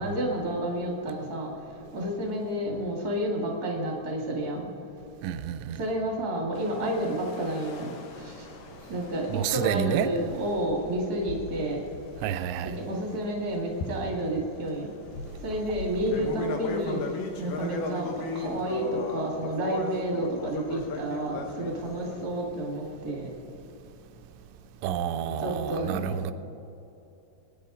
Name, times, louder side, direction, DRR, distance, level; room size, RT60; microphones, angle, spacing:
voice 1, 0.0-1.5 1.9-4.7 5.8-8.5 8.9-11.8 12.6-14.9 15.4-17.0 17.4-23.3 25.4-26.2, right 1 dB, 45° right, 1.2 m, -30 dB
voice 2, 5.2-5.8 9.3-10.1 12.2-12.7 24.8-26.3, right 9 dB, 90° right, 3.0 m, -29 dB
sound 1, 6.5-13.3 13.8-22.3, left 3 dB, 85° left, 1.8 m, -38 dB
23.5 x 9.9 x 3.9 m
omnidirectional pair, 5.3 m